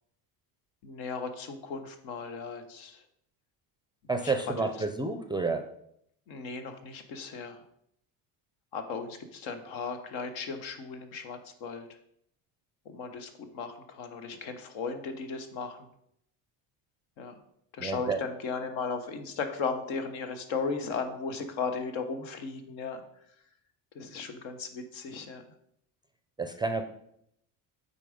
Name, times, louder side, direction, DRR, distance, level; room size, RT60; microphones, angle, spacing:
voice 1, 0.8-3.0 4.2-4.7 6.3-7.6 8.7-11.9 12.8-15.8 17.2-17.4 17.7-23.0 23.9-25.4, left 5 dB, 75° left, 7 dB, 1.3 m, -36 dB
voice 2, 4.1-5.7 17.8-18.2 26.4-26.8, right 3 dB, 10° right, 7 dB, 0.4 m, -30 dB
8.5 x 4.2 x 5.1 m, 0.73 s
cardioid pair, 120°, 47 cm